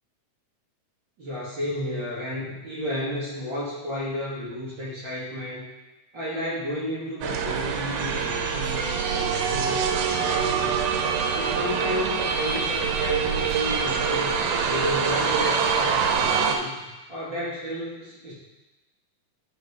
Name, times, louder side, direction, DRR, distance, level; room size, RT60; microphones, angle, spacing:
voice 1, 1.2-5.7 6.1-10.8 11.3-16.8 17.1-18.3, left 1 dB, 40° right, -7 dB, 2.3 m, -32 dB
sound 1, 7.2-16.6, right 6 dB, 90° right, 2.3 m, -25 dB
9.4 x 5.2 x 4.7 m, 1.1 s
omnidirectional pair, 3.5 m